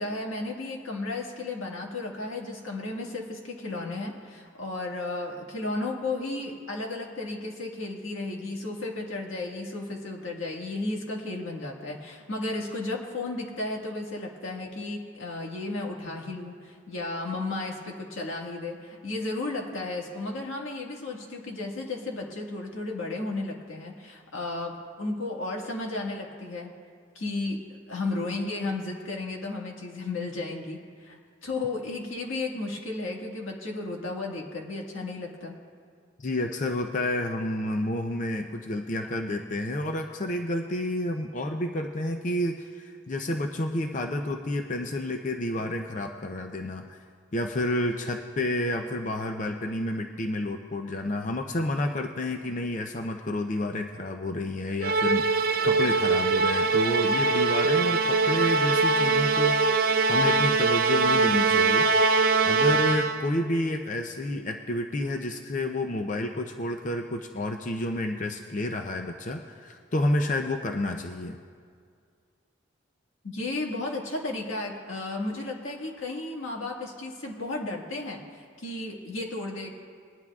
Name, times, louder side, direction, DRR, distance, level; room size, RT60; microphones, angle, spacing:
voice 1, 0.0-26.7 27.1-35.5 73.2-79.7, left 2 dB, 90° left, -1 dB, 1.8 m, -34 dB
voice 2, 36.2-47.0 47.3-61.9 62.4-71.4, left 1 dB, 40° left, 4 dB, 0.5 m, -30 dB
Musical instrument, 54.8-63.3, right 4 dB, 50° right, 0.5 m, -22 dB
21.0 x 11.0 x 2.4 m, 2.1 s
head